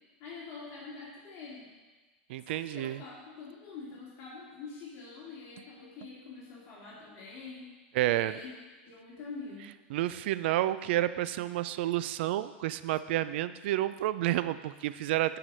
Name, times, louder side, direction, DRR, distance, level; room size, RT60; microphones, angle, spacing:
voice 1, 0.2-1.7 2.5-7.7 8.1-8.5 8.8-9.7, left 4 dB, 40° left, -5 dB, 2.4 m, -45 dB
voice 2, 2.3-3.0 7.9-8.4 9.9-15.4, right 14 dB, 65° right, 14 dB, 0.4 m, -30 dB
10.5 x 4.9 x 5.5 m, 1.3 s
supercardioid pair, 135°, 6 cm